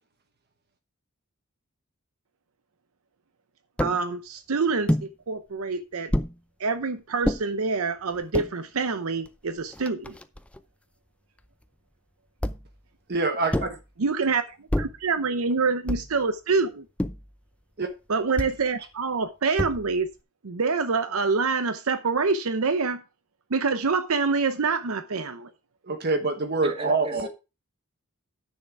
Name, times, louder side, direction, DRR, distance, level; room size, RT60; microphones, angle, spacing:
sound 1, 3.8-4.0 4.9-5.1 6.1-6.4 7.2-7.4 8.1-8.5 9.3-9.4 9.6-10.6 12.4-12.8 13.5-13.8 14.7-15.0 15.9-16.2 17.0-17.3 18.4-18.6 19.6-20.0, left 1 dB, 5° left, 0.5 m, -28 dB
voice 1, 3.8-6.1 6.6-10.1 14.0-16.8 18.1-20.1 20.4-23.0 23.5-25.5, right 4 dB, 70° right, 0.7 m, -26 dB
voice 2, 13.1-13.8 17.8-17.9 25.9-27.3, right 3 dB, 45° right, 1.1 m, -25 dB
voice 3, 26.6-27.3, right 1 dB, 25° right, 1.8 m, -35 dB
10.0 x 6.6 x 4.7 m
head